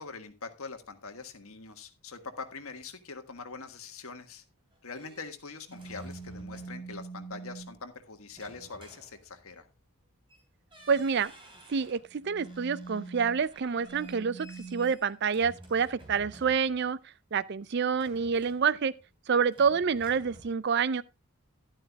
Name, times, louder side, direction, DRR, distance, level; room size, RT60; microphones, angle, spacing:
voice 1, 0.0-4.4 4.8-9.7, left 4 dB, 70° left, 1.6 m, -43 dB
sound 1, 4.5-7.0 8.3-9.7 10.3-10.4 10.7-12.1 12.4-16.9 17.9-19.1 19.4-20.5, right 1 dB, 25° right, 3.3 m, -53 dB
sound 2, 5.7-7.8 10.8-11.2 12.0-14.9, right 4 dB, 35° left, 4.6 m, -44 dB
voice 2, 10.9-11.3 11.7-17.0 17.3-18.9 19.3-21.0, right 6 dB, 50° right, 0.4 m, -27 dB
12.0 x 11.5 x 2.3 m
head